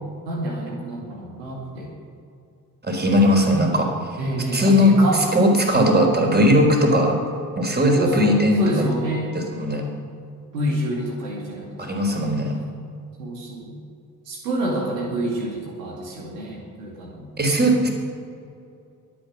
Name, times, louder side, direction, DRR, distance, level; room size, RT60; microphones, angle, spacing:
voice 1, 0.2-1.9 3.2-3.3 4.2-5.2 7.9-9.4 10.5-11.7 12.0-12.2 13.2-13.8 14.3-17.3, right 1 dB, 80° right, -2 dB, 2.3 m, -28 dB
voice 2, 2.8-3.9 4.5-4.9 5.3-7.2 7.6-8.9 9.5-9.9 11.8-12.6 17.4-17.9, equal, 20° right, 2 dB, 3.9 m, -18 dB
22.5 x 8.6 x 6.4 m, 2.5 s
figure-of-eight pair, 40°, 48 cm